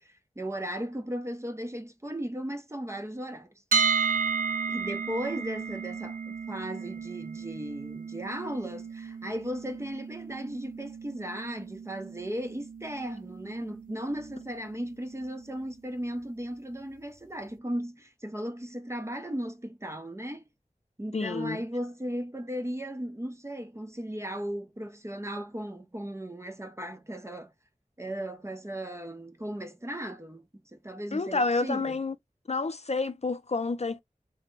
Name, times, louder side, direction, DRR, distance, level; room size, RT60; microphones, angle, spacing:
voice 1, 0.0-3.8 4.7-20.4 21.0-27.5 28.0-32.0, equal, 20° right, 0.6 m, -36 dB
sound 1, 3.7-15.6, right 5 dB, 90° right, 0.5 m, -34 dB
voice 2, 21.1-21.6 31.1-32.1 32.5-34.0, left 3 dB, 50° left, 0.4 m, -29 dB
3.3 x 2.1 x 3.0 m
wide cardioid pair, 45°, 14 cm